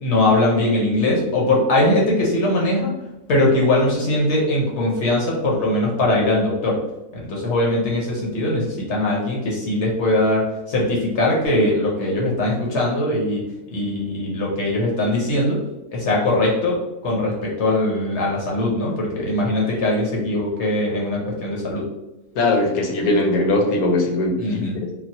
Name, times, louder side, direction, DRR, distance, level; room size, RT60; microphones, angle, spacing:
voice 1, 0.0-2.9 3.3-6.8 7.2-13.4 13.7-15.6 15.9-21.8 24.4-24.8, left 1 dB, 60° left, -2 dB, 0.9 m, -21 dB
voice 2, 22.3-24.6, left 2 dB, 75° left, 2 dB, 1.1 m, -20 dB
4.0 x 2.0 x 2.7 m, 0.98 s
omnidirectional pair, 1.5 m